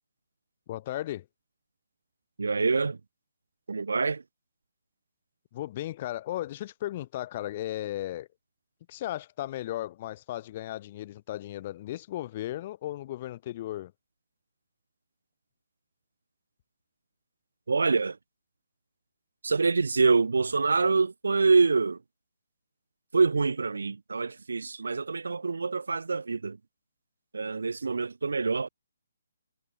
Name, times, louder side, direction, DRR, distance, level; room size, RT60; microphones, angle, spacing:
voice 1, 0.7-1.2 5.5-8.3 8.9-13.9, left 14 dB, 30° left, 1.6 m, -35 dB
voice 2, 2.4-3.0 3.7-4.2 17.7-18.2 19.4-22.0 23.1-26.6 27.3-28.7, right 4 dB, 90° right, 0.4 m, -25 dB
hypercardioid pair, 165°, 0 cm